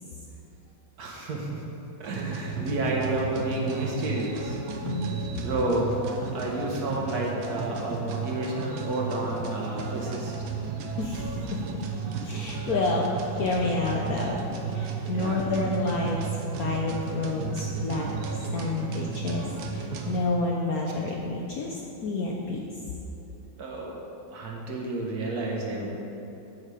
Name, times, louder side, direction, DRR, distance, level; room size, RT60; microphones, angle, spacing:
voice 1, 1.0-1.6 2.0-4.6 5.3-10.4 15.1-15.4 23.6-24.0 24.3-25.9, right 1 dB, 60° right, -2 dB, 1.3 m, -30 dB
sound 1, 2.0-20.2, right 5 dB, 80° right, 1.5 m, -33 dB
voice 2, 4.8-5.2 11.0-11.6 12.2-16.2 16.6-19.5 19.7-22.7, left 3 dB, 70° left, -1 dB, 0.9 m, -29 dB
8.3 x 5.4 x 4.8 m, 2.9 s
omnidirectional pair, 2.1 m